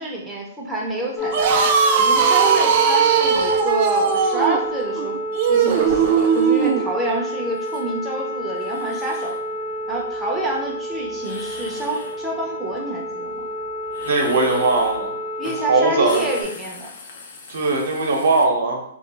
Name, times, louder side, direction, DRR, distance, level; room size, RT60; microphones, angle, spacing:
voice 1, 0.0-1.5 1.9-5.2 5.5-9.4 9.9-13.4 15.4-16.9, right 1 dB, 5° right, -4 dB, 0.6 m, -28 dB
sound 1, 1.2-16.4, equal, 30° left, 0.8 m, -29 dB
sound 2, 1.2-6.9, right 6 dB, 45° right, 0.4 m, -18 dB
sound 3, 7.5-7.8 8.5-9.4 11.2-12.2 13.9-15.0 15.4-15.6 15.9-18.4, left 4 dB, 55° left, 0.6 m, -40 dB
voice 2, 14.1-15.1 15.4-16.2 17.5-18.8, right 3 dB, 70° right, 1 dB, 0.8 m, -20 dB
2.3 x 2.1 x 3.8 m, 0.68 s
hypercardioid pair, 140°, 0 cm